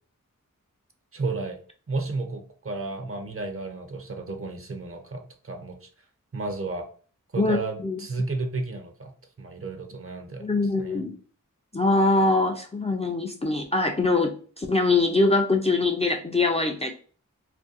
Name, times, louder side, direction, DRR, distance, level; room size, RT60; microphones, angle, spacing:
voice 1, 1.1-1.6 1.9-5.9 6.3-6.9 7.3-9.1 9.4-10.4 10.8-11.0, right 3 dB, 45° right, 5 dB, 0.5 m, -32 dB
voice 2, 7.4-8.0 10.4-11.2 11.7-16.9, left 3 dB, 20° left, 2 dB, 0.3 m, -23 dB
2.5 x 2.2 x 2.5 m, 0.41 s
wide cardioid pair, 45°, 33 cm